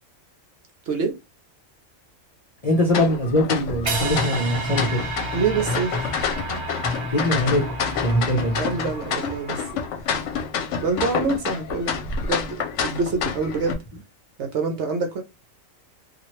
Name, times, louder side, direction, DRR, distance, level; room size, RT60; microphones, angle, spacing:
voice 1, 2.6-5.0 7.1-8.6, equal, 40° left, 0.6 m, -22 dB
sound 1, 2.9-13.7, left 6 dB, 70° left, 0.9 m, -28 dB
sound 2, 3.7-9.0, left 1 dB, 15° right, 0.8 m, -32 dB
sound 3, 3.9-10.0, right 3 dB, 50° right, 1.3 m, -33 dB
voice 2, 5.3-6.0 6.5-6.6 8.6-9.6 10.8-11.9 12.2-13.8 14.4-15.2, right 4 dB, 65° right, 0.9 m, -26 dB
2.9 x 2.4 x 3.0 m
omnidirectional pair, 1.4 m